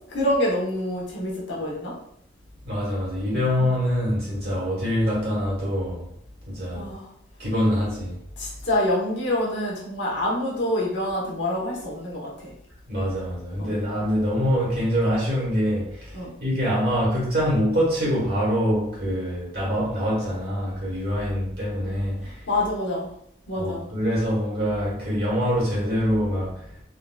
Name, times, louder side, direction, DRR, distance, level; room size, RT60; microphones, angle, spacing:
voice 1, 0.1-1.9 6.7-7.1 8.4-12.5 13.6-13.7 16.1-16.3 22.5-23.1 23.5-23.8, left 1 dB, 65° left, 0.9 m, -26 dB
voice 2, 2.6-6.1 6.5-6.9 7.4-8.2 12.9-22.4 23.6-26.7, equal, 55° right, 1.2 m, -25 dB
3.6 x 2.2 x 2.3 m
head